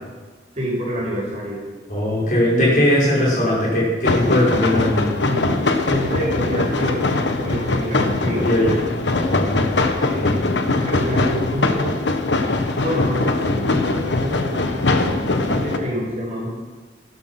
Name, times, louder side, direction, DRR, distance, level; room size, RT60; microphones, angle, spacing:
voice 1, 0.5-1.6 5.2-5.5 5.8-8.6 10.7-11.9 12.8-16.5, equal, 35° right, -4 dB, 5.5 m, -27 dB
voice 2, 1.9-5.2 8.4-8.7 9.2-10.5, left 1 dB, 45° left, -5 dB, 5.4 m, -20 dB
sound 1, 4.0-15.8, left 2 dB, 85° left, 1.2 m, -21 dB
13.0 x 13.0 x 5.8 m, 1.4 s
head